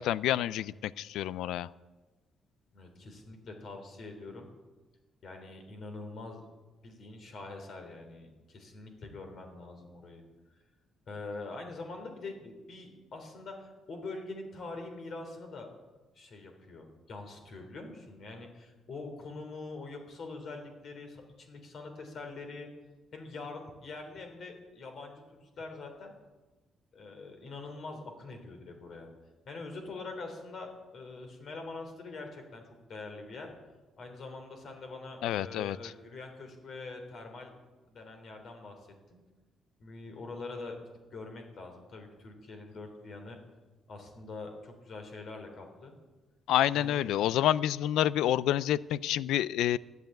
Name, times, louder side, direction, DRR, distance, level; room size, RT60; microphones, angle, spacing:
voice 1, 0.0-1.7 35.2-35.9 46.5-49.8, left 12 dB, 90° left, 20 dB, 0.4 m, -28 dB
voice 2, 2.7-4.5 5.2-6.5 6.8-10.2 11.1-15.7 16.1-22.7 23.1-26.1 26.9-29.1 29.4-33.5 34.0-37.5 37.9-38.8 39.1-39.2 39.8-40.8 41.1-43.4 43.9-45.9 46.7-47.1, left 3 dB, 50° left, 4 dB, 3.3 m, -44 dB
13.5 x 9.4 x 9.0 m, 1.2 s
cardioid pair, 120°, 0 cm